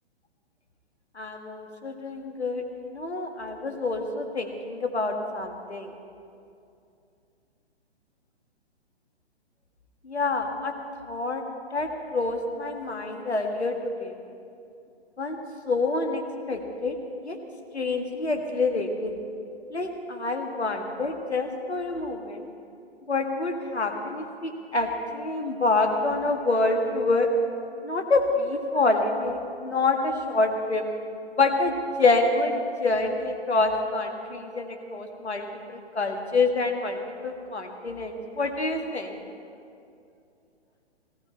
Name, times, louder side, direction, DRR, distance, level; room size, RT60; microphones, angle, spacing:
voice 1, 1.2-5.9 10.0-10.7 11.1-11.4 11.7-14.2 15.2-15.4 15.7-16.2 16.5-17.0 17.2-17.4 17.7-19.2 19.7-22.5 23.1-27.3 27.8-30.8 31.3-39.2, left 3 dB, 75° left, 4 dB, 2.0 m, -27 dB
18.5 x 16.5 x 4.4 m, 2.5 s
figure-of-eight pair, 125°, 33 cm